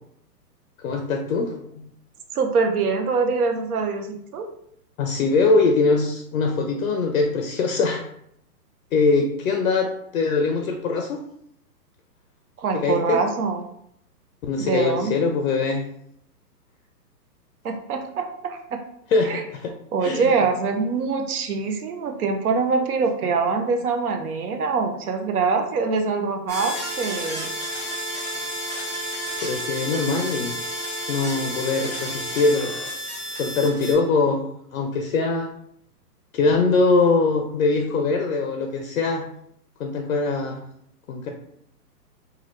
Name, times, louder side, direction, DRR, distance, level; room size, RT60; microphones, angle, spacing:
voice 1, 0.8-1.9 5.0-8.0 8.9-11.2 12.7-13.2 14.4-15.8 19.1-19.7 20.0-20.3 29.4-30.6 31.1-32.7 33.3-35.5 36.3-39.3 39.8-40.6 41.1-41.3, left 3 dB, 60° left, 3 dB, 0.5 m, -22 dB
voice 2, 2.3-4.5 12.6-13.7 14.7-15.1 17.6-18.8 19.2-19.5 19.9-27.5, right 4 dB, 65° right, 5 dB, 0.7 m, -24 dB
sound 1, 26.5-33.9, equal, 5° left, 0.7 m, -31 dB
3.2 x 2.3 x 3.0 m, 0.72 s
hypercardioid pair, 145°, 49 cm